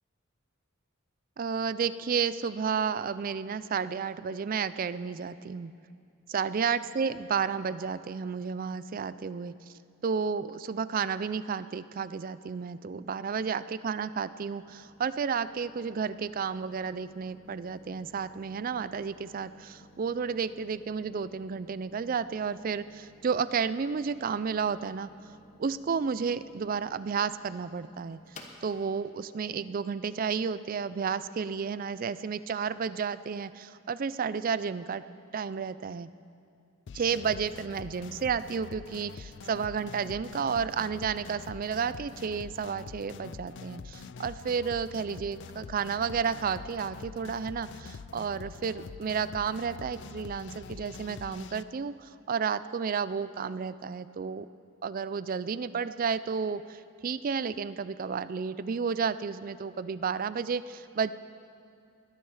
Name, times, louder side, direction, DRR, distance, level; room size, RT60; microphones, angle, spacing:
voice 1, 1.4-5.7 6.3-9.7 10.0-25.1 25.6-28.2 28.6-35.0 35.3-36.1 36.9-54.5 54.8-61.1, right 6 dB, 40° right, 15 dB, 0.3 m, -32 dB
sound 1, 13.4-30.9, left 1 dB, 35° left, 1.2 m, -57 dB
sound 2, 36.9-51.6, left 5 dB, 55° left, 0.4 m, -45 dB
21.0 x 10.5 x 4.8 m, 2.4 s
head